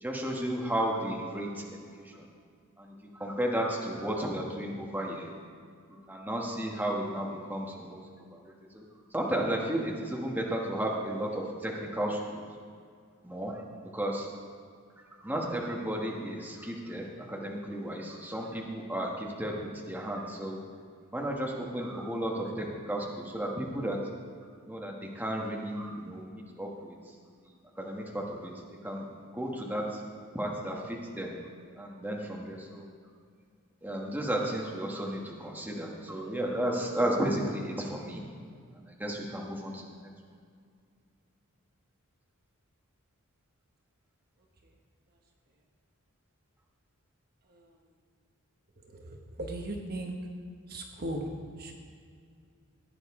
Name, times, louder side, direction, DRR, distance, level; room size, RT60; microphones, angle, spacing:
voice 1, 0.0-2.3 2.8-5.3 5.9-8.0 8.3-8.8 9.1-12.4 13.2-13.6 13.9-14.3 15.2-20.6 21.1-24.0 24.7-26.9 27.4-28.5 28.8-29.1 29.3-30.0 30.3-31.3 31.7-32.9 33.8-38.2 38.7-40.1, right 1 dB, 10° right, -1 dB, 1.3 m, -33 dB
voice 2, 48.8-50.1 50.7-51.8, right 1 dB, 45° right, 2 dB, 1.1 m, -38 dB
16.5 x 9.1 x 3.7 m, 2.2 s
head